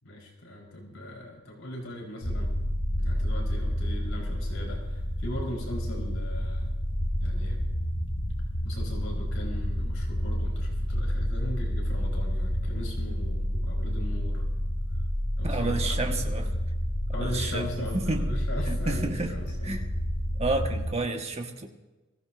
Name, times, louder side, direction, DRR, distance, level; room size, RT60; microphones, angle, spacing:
voice 1, 0.0-2.5 3.0-6.8 7.2-7.6 8.6-14.5 15.4-16.3 17.1-19.8, left 1 dB, 70° left, -1 dB, 4.2 m, -39 dB
sound 1, 2.2-20.9, equal, 40° left, 2.2 m, -29 dB
voice 2, 15.4-16.5 17.2-18.3 18.7-19.3 19.6-19.8 20.4-21.7, right 2 dB, 30° right, 3 dB, 1.4 m, -30 dB
23.5 x 15.5 x 2.6 m, 1.1 s
head